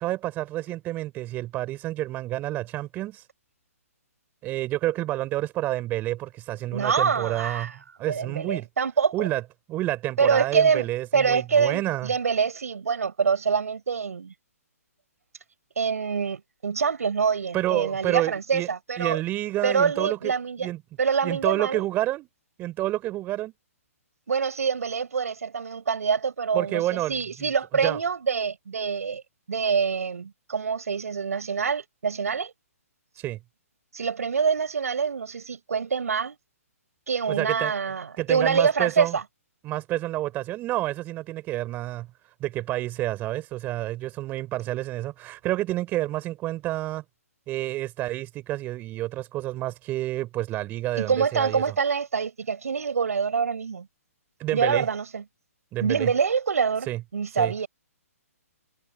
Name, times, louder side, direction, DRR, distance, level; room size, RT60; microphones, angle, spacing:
voice 1, 0.0-3.2 4.4-7.7 8.0-8.7 9.1-9.4 9.7-12.1 17.5-18.7 19.0-20.3 20.6-20.8 21.2-22.3 22.6-23.5 26.5-27.5 27.8-28.0 33.2-33.4 37.3-37.7 38.2-39.2 39.6-42.1 42.4-47.0 47.5-51.7 54.4-54.9 55.7-56.1 56.9-57.0 57.4-57.5, right 15 dB, 20° right, 4.4 m, -29 dB
voice 2, 6.7-9.3 10.2-10.9 11.1-14.3 15.8-19.2 19.6-20.7 21.0-21.9 24.3-29.2 29.5-32.5 33.9-36.4 37.1-39.2 50.9-53.9 54.5-55.2 55.8-57.7, right 6 dB, 70° right, 6.4 m, -25 dB
hypercardioid pair, 140°, 8 cm